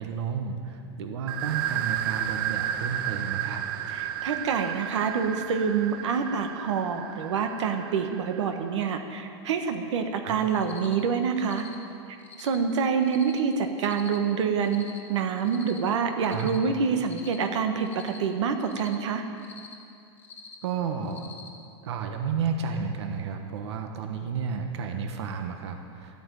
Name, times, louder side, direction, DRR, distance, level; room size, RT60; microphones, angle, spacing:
voice 1, 0.0-3.6 10.2-10.4 16.2-16.5 20.6-21.2 21.8-26.2, right 6 dB, 70° right, 4 dB, 1.3 m, -32 dB
sound 1, 1.3-8.7, right 11 dB, 50° right, 0.7 m, -33 dB
voice 2, 3.9-11.7 12.4-19.2, right 6 dB, 90° right, 5 dB, 1.4 m, -27 dB
Cricket, 10.6-10.9 11.4-11.7 12.2-12.6 13.0-13.4 13.8-14.2 14.6-15.0 15.4-15.8 16.2-16.6 17.0-17.4 17.8-18.2 18.6-18.9 19.4-19.7 20.2-20.5 21.0-21.5, left 5 dB, 10° left, 1.3 m, -46 dB
13.5 x 8.9 x 9.2 m, 2.4 s
supercardioid pair, 170°, 15 cm